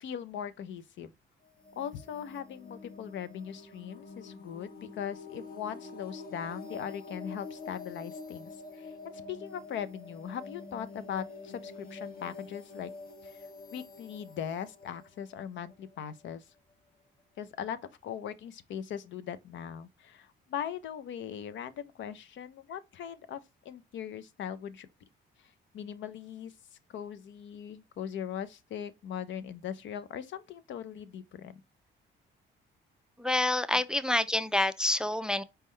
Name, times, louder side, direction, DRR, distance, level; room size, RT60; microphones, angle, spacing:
voice 1, 0.0-1.1 1.8-12.9 13.2-13.5 13.7-16.4 17.4-24.9 25.4-26.5 26.9-31.5, left 9 dB, 70° left, 0.6 m, -40 dB
sound 1, 1.4-16.1, left 3 dB, 45° left, 1.2 m, -46 dB
voice 2, 33.2-35.4, left 2 dB, 5° right, 0.3 m, -27 dB
4.3 x 3.6 x 3.1 m
cardioid pair, 90°, 20 cm